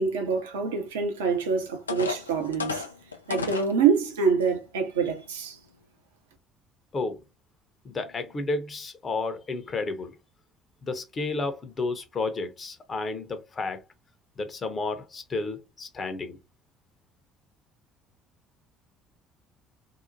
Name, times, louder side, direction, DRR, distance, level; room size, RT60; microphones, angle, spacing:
voice 1, 0.0-2.8 3.3-5.6, right 5 dB, 75° right, 0.6 m, -25 dB
sound 1, 1.3-1.4 1.9-3.7 4.4-4.5 5.0-5.2, left 5 dB, 85° left, 0.3 m, -33 dB
voice 2, 7.8-10.2 10.8-13.8 14.4-16.4, left 3 dB, 35° left, 0.8 m, -32 dB
2.8 x 2.1 x 2.6 m
figure-of-eight pair, 55°, 0 cm